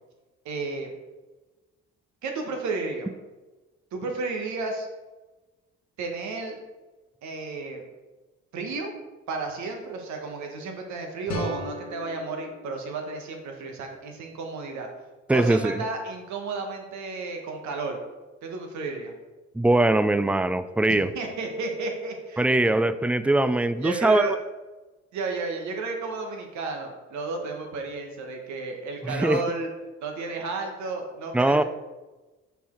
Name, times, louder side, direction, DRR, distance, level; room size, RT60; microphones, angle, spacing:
voice 1, 0.4-0.9 2.2-3.1 3.9-4.9 6.0-6.6 7.2-7.8 8.5-8.9 9.3-14.9 15.3-18.0 18.4-19.1 21.1-22.5 23.8-24.3 25.1-29.7 30.0-31.6, right 3 dB, 70° right, 3 dB, 1.3 m, -32 dB
sound 1, 11.3-14.2, left 2 dB, 65° left, 1.3 m, -37 dB
voice 2, 15.3-15.8 19.5-21.1 22.4-24.3 29.0-29.4 31.3-31.6, right 2 dB, 5° right, 13 dB, 0.3 m, -21 dB
5.5 x 4.6 x 4.4 m, 1.2 s
hypercardioid pair, 55°, 30 cm